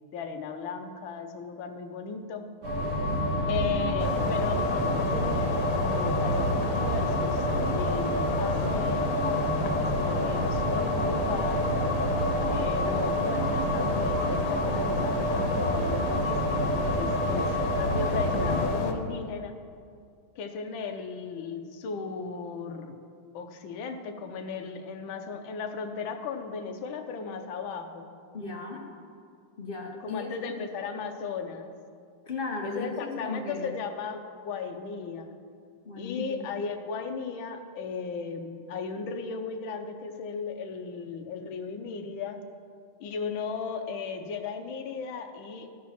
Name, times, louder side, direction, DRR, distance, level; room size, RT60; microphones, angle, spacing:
voice 1, 0.1-2.4 3.5-11.7 12.5-19.6 20.4-22.9 23.3-28.1 30.0-31.7 32.6-35.4 36.0-42.4 43.0-45.7, left 5 dB, 70° left, 5 dB, 1.5 m, -36 dB
sound 1, 2.6-18.7, equal, 75° right, 3.0 m, -28 dB
voice 2, 2.8-3.2 28.3-28.9 29.6-30.6 32.3-33.7 35.8-36.4, left 3 dB, 45° left, 0 dB, 0.7 m, -36 dB
sound 2, 4.0-18.9, left 6 dB, 85° left, 1.8 m, -33 dB
13.5 x 4.9 x 5.9 m, 2.2 s
omnidirectional pair, 2.4 m